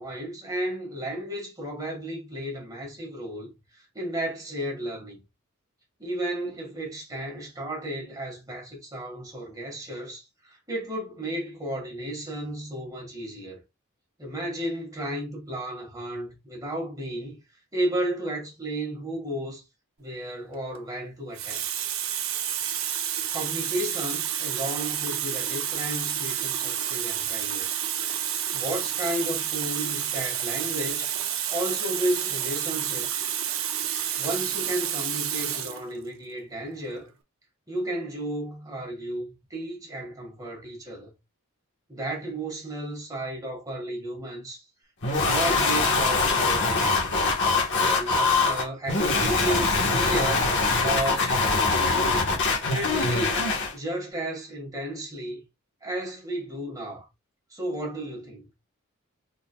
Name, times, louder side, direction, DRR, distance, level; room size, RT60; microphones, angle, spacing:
voice 1, 0.0-5.2 6.0-13.6 14.2-17.4 17.7-19.6 20.0-21.6 23.3-27.7 28.5-31.1 31.5-33.3 34.2-37.1 37.7-41.1 41.9-44.6 45.0-47.0 47.7-52.4 52.7-55.4 55.8-57.0 57.5-58.4, right 1 dB, 15° right, 1.6 m, -33 dB
Water tap faucet, 20.5-20.8 21.3-35.8 36.7-36.9, right 10 dB, 65° right, 0.6 m, -30 dB
sound 1, 45.0-53.7, left 3 dB, 55° left, 1.2 m, -23 dB
3.9 x 3.8 x 2.3 m
head